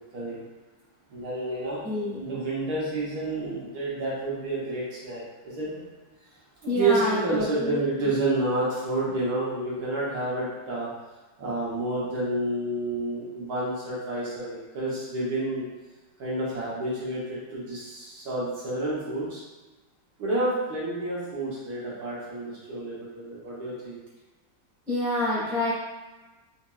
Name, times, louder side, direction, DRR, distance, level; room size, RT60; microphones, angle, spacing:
voice 1, 1.1-1.8 2.2-5.8 6.6-10.9 11.4-15.6 16.2-19.4 20.2-24.0, right 2 dB, 65° right, -7 dB, 1.4 m, -29 dB
voice 2, 1.8-2.2 6.6-7.8 24.9-25.7, left 2 dB, ahead, -9 dB, 0.8 m, -27 dB
4.3 x 2.9 x 2.3 m, 1.2 s
omnidirectional pair, 1.9 m